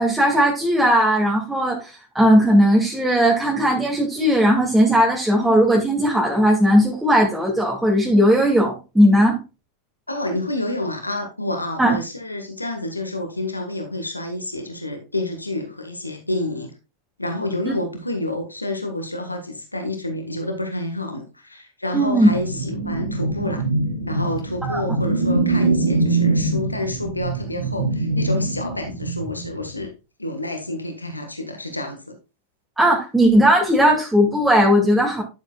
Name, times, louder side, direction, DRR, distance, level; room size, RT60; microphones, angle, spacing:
voice 1, 0.0-9.4 11.8-12.0 17.7-17.8 21.9-22.3 24.6-24.8 32.8-35.2, equal, 5° right, -2 dB, 2.2 m, -17 dB
voice 2, 10.1-16.7 17.2-23.6 24.1-29.9 30.2-32.2, left 1 dB, 85° left, 4 dB, 1.4 m, -29 dB
sound 1, 22.3-29.7, right 2 dB, 80° right, 2.8 m, -23 dB
11.5 x 7.2 x 2.3 m, 0.29 s
figure-of-eight pair, 90°, 0 cm